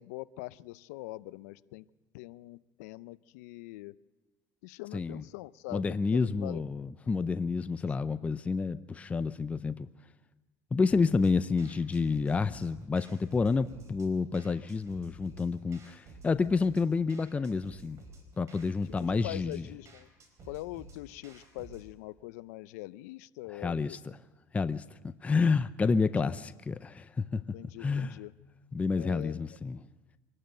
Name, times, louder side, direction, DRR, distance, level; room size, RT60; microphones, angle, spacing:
voice 1, 0.0-1.9 2.1-4.0 4.6-6.6 19.0-20.1 20.4-24.0 26.2-26.3 27.5-28.3 28.9-29.4, left 19 dB, 90° left, 0.5 m, -43 dB
voice 2, 4.9-5.2 5.7-9.9 10.7-18.0 18.4-19.7 23.6-24.0 24.5-27.4 27.8-28.2 28.7-29.8, left 4 dB, 15° left, 0.5 m, -29 dB
sound 1, 10.9-21.9, right 2 dB, 40° right, 4.4 m, -53 dB
24.5 x 12.0 x 9.0 m
supercardioid pair, 120°, 8 cm